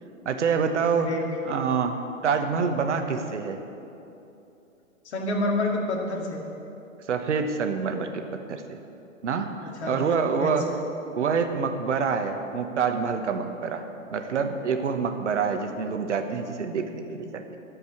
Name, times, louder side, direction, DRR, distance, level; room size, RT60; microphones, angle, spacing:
voice 1, 0.2-1.1 1.4-2.0 2.2-3.6 7.1-8.8 9.2-9.5 9.8-10.7 11.1-13.8 14.1-17.6, right 5 dB, 60° right, 6 dB, 1.1 m, -26 dB
voice 2, 0.9-1.7 5.1-6.4 9.8-10.1 10.4-10.5, left 2 dB, 55° left, 0 dB, 2.1 m, -29 dB
12.5 x 5.3 x 8.6 m, 2.8 s
figure-of-eight pair, 125°, 41 cm